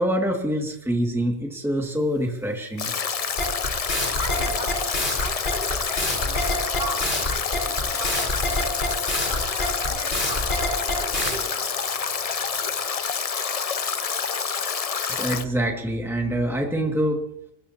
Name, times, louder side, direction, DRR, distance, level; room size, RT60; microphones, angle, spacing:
voice 1, 0.0-2.9 15.1-17.2, equal, ahead, 1 dB, 2.1 m, -25 dB
Stream / Drip / Trickle dribble, 2.8-15.4, left 6 dB, 40° left, 0.7 m, -28 dB
sound 1, 3.4-11.3, left 1 dB, 70° left, 4.8 m, -26 dB
voice 2, 4.2-8.8 9.3-11.6, right 1 dB, 70° right, -1 dB, 5.4 m, -37 dB
23.0 x 20.5 x 2.9 m, 0.79 s
omnidirectional pair, 1.0 m